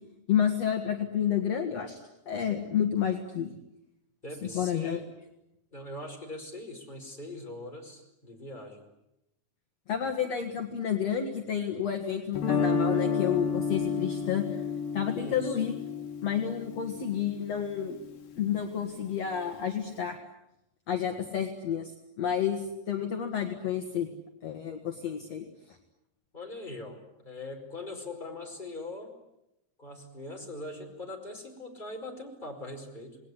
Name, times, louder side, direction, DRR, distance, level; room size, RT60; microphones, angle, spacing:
voice 1, 0.3-2.0 2.3-3.5 4.5-5.0 9.9-14.6 14.9-15.7 16.2-18.0 18.4-20.2 20.9-24.1 24.4-25.5, left 8 dB, 55° left, 3 dB, 2.8 m, -30 dB
voice 2, 4.2-5.0 5.7-8.9 15.2-15.6 26.3-29.1 29.8-33.2, left 2 dB, 15° left, 2 dB, 5.1 m, -41 dB
Guitar, 12.3-18.4, left 5 dB, 80° left, 4.0 m, -31 dB
28.0 x 20.5 x 9.9 m, 0.88 s
omnidirectional pair, 4.0 m